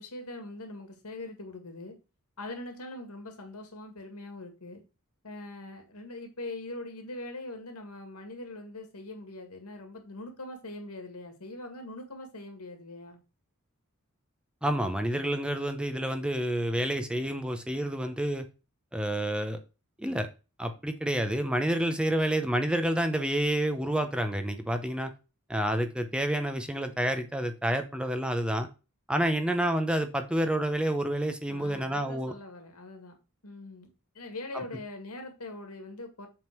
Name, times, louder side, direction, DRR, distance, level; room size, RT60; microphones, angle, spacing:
voice 1, 0.0-2.0 2.4-4.8 5.2-13.2 31.5-33.2 33.4-33.9 34.1-36.3, left 2 dB, 85° left, 2.1 m, -42 dB
voice 2, 14.6-18.4 18.9-19.6 20.0-20.3 20.6-25.1 25.5-28.7 29.1-32.3, right 1 dB, 5° right, 0.7 m, -29 dB
7.6 x 3.7 x 6.0 m
head